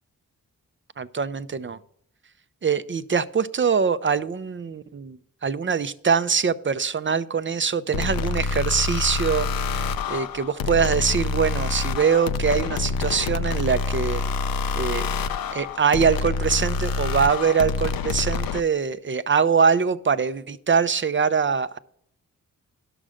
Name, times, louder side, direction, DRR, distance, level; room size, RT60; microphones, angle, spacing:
voice 1, 1.0-1.8 2.6-9.8 10.1-14.2 14.7-15.1 15.5-21.8, right 6 dB, 35° right, 13 dB, 0.6 m, -23 dB
sound 1, 7.9-18.6, left 4 dB, 80° left, 0.6 m, -27 dB
11.0 x 6.4 x 5.0 m, 0.70 s
cardioid pair, 65°, 34 cm